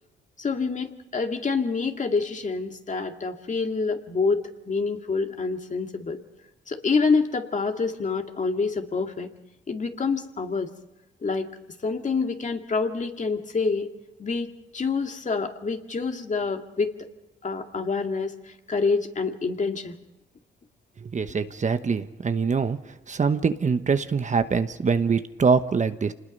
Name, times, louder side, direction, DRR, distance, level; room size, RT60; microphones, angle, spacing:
voice 1, 0.4-6.2 6.7-9.3 9.7-10.7 11.2-11.5 11.8-13.9 14.2-16.9 17.4-20.0, left 4 dB, 40° left, 5 dB, 2.2 m, -27 dB
voice 2, 21.0-22.8 23.1-26.1, right 5 dB, 40° right, 10 dB, 1.1 m, -24 dB
26.5 x 20.5 x 5.5 m, 0.96 s
cardioid pair, 75°, 19 cm